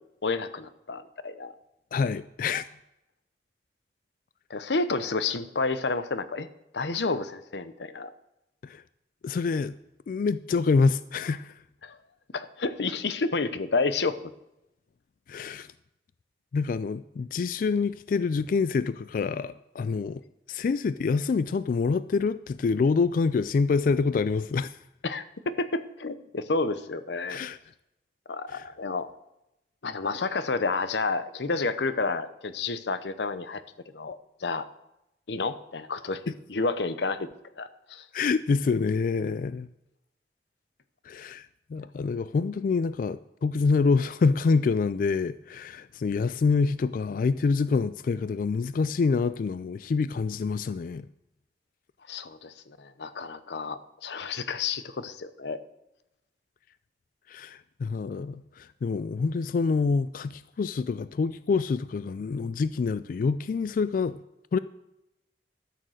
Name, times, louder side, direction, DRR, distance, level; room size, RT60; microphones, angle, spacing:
voice 1, 0.2-1.5 4.5-6.5 6.7-8.1 11.8-12.0 12.3-14.2 25.0-27.4 28.3-29.1 29.8-33.6 33.9-34.7 35.3-36.2 36.5-37.3 37.6-38.1 52.1-55.6, left 3 dB, 75° left, 0.8 m, -30 dB
voice 2, 1.9-2.7 8.6-8.8 9.2-9.7 10.1-11.6 15.3-15.7 16.5-20.2 20.5-24.8 27.3-27.6 28.5-28.7 36.3-36.4 38.1-39.7 41.0-51.1 57.3-64.2 64.5-64.6, left 4 dB, 50° left, 0.3 m, -26 dB
13.0 x 6.6 x 6.4 m
head